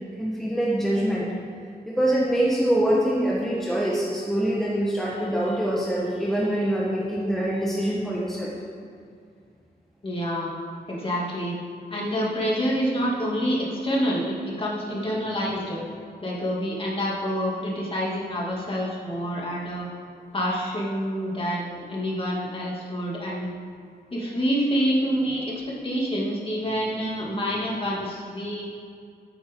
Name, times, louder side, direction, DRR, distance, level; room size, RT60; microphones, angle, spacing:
voice 1, 0.2-1.3 1.9-8.5, right 1 dB, ahead, -5 dB, 1.4 m, -24 dB
voice 2, 10.0-10.5 10.9-11.5 11.9-15.8 16.2-19.9 20.3-23.5 24.1-28.6, equal, 30° left, -5 dB, 2.6 m, -27 dB
13.5 x 9.1 x 3.8 m, 2.3 s
wide cardioid pair, 145°, 17 cm